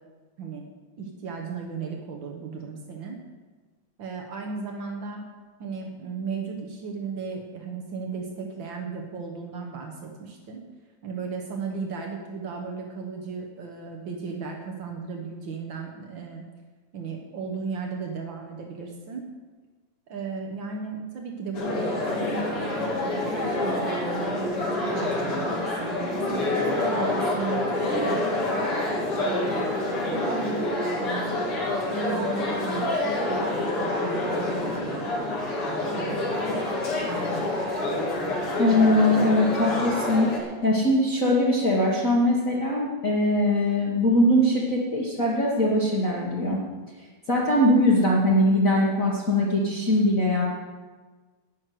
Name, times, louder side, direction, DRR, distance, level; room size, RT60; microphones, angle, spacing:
voice 1, 1.0-3.2 4.0-5.3 5.6-10.6 11.0-16.4 16.9-19.3 20.1-26.5 26.8-28.7 29.1-29.8 30.1-31.4 31.9-35.1 35.6-36.7 37.1-37.5, right 4 dB, 80° right, 1 dB, 1.0 m, -35 dB
sound 1, 21.5-40.4, left 2 dB, 45° left, 2.6 m, -27 dB
voice 2, 38.6-46.6 47.3-50.5, left 1 dB, 70° left, -4 dB, 0.7 m, -21 dB
12.5 x 6.4 x 9.2 m, 1.4 s
omnidirectional pair, 4.0 m